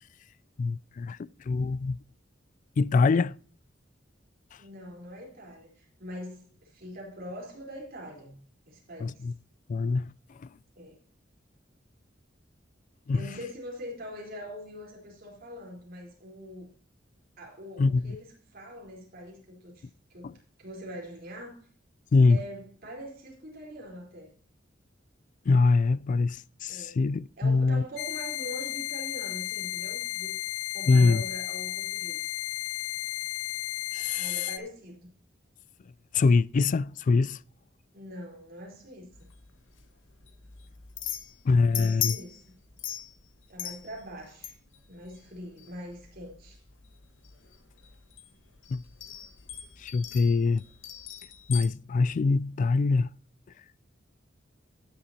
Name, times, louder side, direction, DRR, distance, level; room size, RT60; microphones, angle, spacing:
voice 1, 0.6-1.2 1.4-2.0 2.8-3.4 9.0-9.3 9.7-10.1 10.4-10.5 13.1-13.3 17.8-18.2 20.2-20.3 22.1-22.4 25.5-27.8 30.9-31.2 33.9-34.3 36.1-37.4 41.4-42.2 48.7-48.8 49.8-50.6 51.5-53.1, left 4 dB, 40° left, 0.3 m, -24 dB
voice 2, 4.6-9.3 10.8-11.0 13.1-16.7 17.4-21.7 22.3-24.3 26.7-27.0 27.4-30.4 30.7-32.3 34.1-35.1 37.9-39.3 41.7-42.6 43.5-44.6 44.9-46.6, equal, 50° right, 3.9 m, -43 dB
sound 1, 28.0-34.6, left 15 dB, 60° left, 0.7 m, -34 dB
sound 2, 39.1-51.6, left 11 dB, 85° left, 1.4 m, -40 dB
16.5 x 7.0 x 2.8 m
head